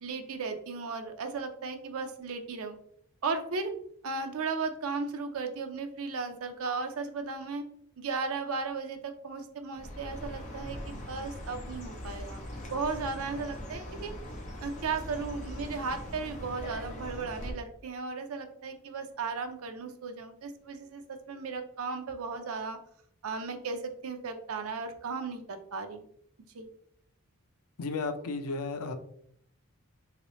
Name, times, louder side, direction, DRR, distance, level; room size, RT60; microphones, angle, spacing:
voice 1, 0.0-2.8 3.2-3.7 4.0-7.6 8.0-12.4 12.7-14.1 14.6-22.8 23.2-26.1 26.5-26.7, right 4 dB, 75° right, 7 dB, 0.5 m, -35 dB
Chirp tweet, 9.7-17.5, left 1 dB, 35° left, 0.7 m, -41 dB
voice 2, 27.8-28.9, left 3 dB, 80° left, 8 dB, 0.5 m, -33 dB
3.0 x 2.9 x 3.0 m, 0.68 s
head